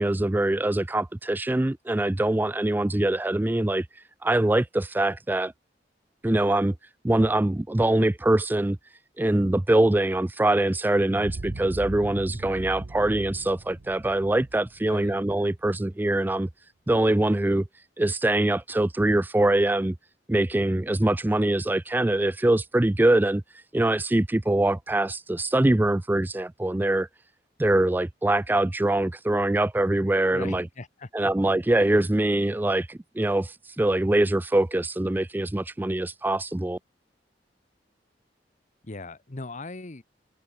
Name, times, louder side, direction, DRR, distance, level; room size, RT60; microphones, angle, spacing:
voice 1, 0.0-3.9 4.2-5.5 6.2-6.7 7.0-8.8 9.2-16.5 16.9-17.6 18.0-20.0 20.3-23.4 23.7-27.1 27.6-30.7 31.1-36.8, right 1 dB, 10° right, 0.4 m, -23 dB
sound 1, 11.1-15.8, right 2 dB, 85° right, 0.9 m, -39 dB
voice 2, 30.3-31.1 38.8-40.0, left 2 dB, 45° left, 1.1 m, -38 dB
head